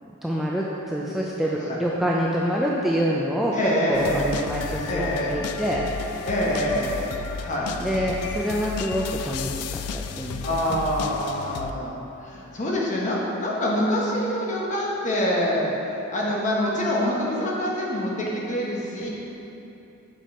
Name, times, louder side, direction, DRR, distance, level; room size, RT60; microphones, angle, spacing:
voice 1, 0.2-3.6 3.9-5.9 7.8-10.6 11.1-11.2, equal, ahead, -4 dB, 0.4 m, -26 dB
voice 2, 3.5-4.3 4.9-5.3 6.2-7.0 7.4-7.7 10.4-15.7 16.1-19.1, equal, 35° left, -4 dB, 1.1 m, -25 dB
sound 1, 3.9-11.7, left 6 dB, 80° left, 0.3 m, -33 dB
7.4 x 5.3 x 4.2 m, 2.9 s
head